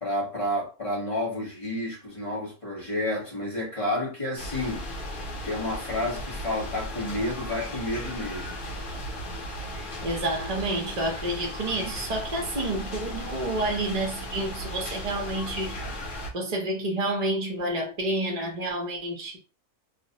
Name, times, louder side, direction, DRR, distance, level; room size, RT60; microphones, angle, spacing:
voice 1, 0.0-4.9 5.4-8.6, left 1 dB, 25° left, 0.8 m, -30 dB
sound 1, 4.4-16.3, equal, 60° left, 0.5 m, -36 dB
voice 2, 9.7-15.8 16.3-19.4, right 1 dB, 70° right, 0.3 m, -29 dB
2.5 x 2.0 x 2.7 m
omnidirectional pair, 1.6 m